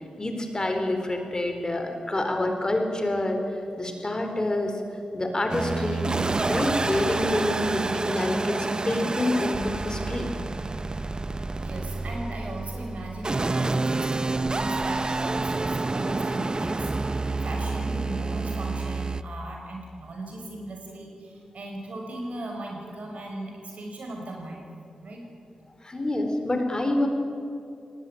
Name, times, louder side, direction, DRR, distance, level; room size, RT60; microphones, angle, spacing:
voice 1, 0.2-3.4 3.8-4.7 5.1-6.1 6.5-10.3 25.8-27.1, left 1 dB, 30° left, 5 dB, 4.2 m, -27 dB
sound 1, 5.5-19.2, right 3 dB, 35° right, 0.8 m, -28 dB
voice 2, 11.5-24.7 25.0-25.2, right 2 dB, 65° right, 1 dB, 6.0 m, -38 dB
19.0 x 18.5 x 9.2 m, 2.5 s
supercardioid pair, 45°, 2 cm